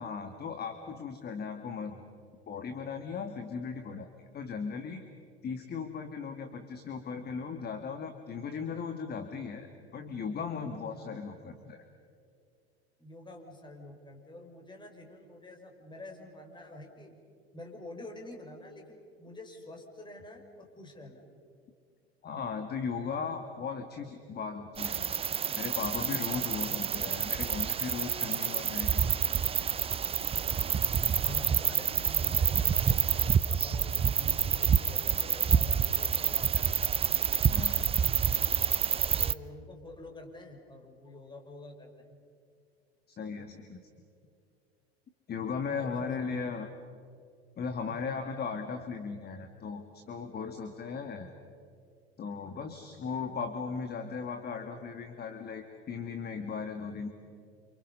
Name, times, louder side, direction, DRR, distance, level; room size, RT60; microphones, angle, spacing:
voice 1, 0.0-2.0 2.5-4.1 4.3-5.0 5.4-9.7 9.9-11.8 22.2-25.2 25.6-29.0 29.6-29.7 37.5-37.9 43.1-43.8 45.3-46.7 47.6-51.3 52.2-57.1, left 5 dB, 30° left, 6 dB, 2.0 m, -37 dB
voice 2, 13.0-17.1 17.5-21.2 31.1-36.7 39.2-42.2 45.7-46.4 47.9-48.0, left 2 dB, 15° left, 2 dB, 5.4 m, -47 dB
sound 1, 24.8-39.3, right 7 dB, 20° right, 0.6 m, -28 dB
30.0 x 28.0 x 5.6 m, 2.3 s
figure-of-eight pair, 80°, 32 cm